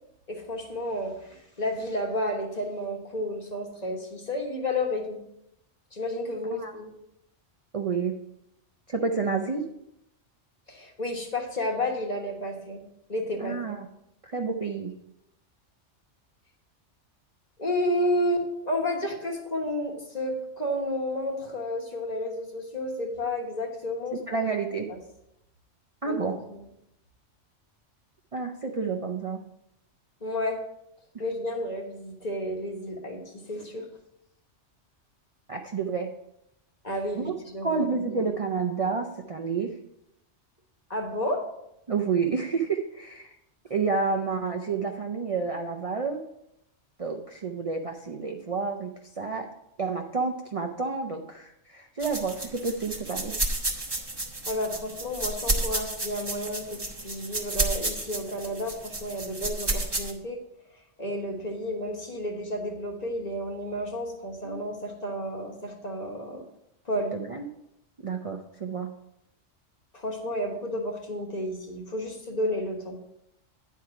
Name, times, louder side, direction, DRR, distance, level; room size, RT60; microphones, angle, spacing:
voice 1, 0.3-5.2 5.9-6.9 10.7-12.8 13.1-13.5 17.6-24.2 24.9-25.0 26.0-26.2 26.5-26.6 30.2-30.6 31.2-33.9 36.8-37.9 40.9-41.4 54.5-60.4 61.0-66.4 66.8-67.1 69.9-73.0, left 1 dB, 35° left, 2 dB, 1.3 m, -31 dB
voice 2, 7.7-8.1 8.9-9.7 13.4-13.9 14.2-14.9 24.2-24.9 26.0-26.4 28.3-29.4 31.1-31.2 35.5-36.1 37.2-37.3 37.6-39.8 41.9-43.3 43.7-46.2 47.0-49.5 49.8-53.3 64.4-64.6 67.1-67.5 68.0-68.9, right 5 dB, 40° right, 2 dB, 0.6 m, -29 dB
sound 1, 52.0-60.1, right 2 dB, 20° right, 1.1 m, -31 dB
9.8 x 4.7 x 5.8 m, 0.82 s
omnidirectional pair, 1.2 m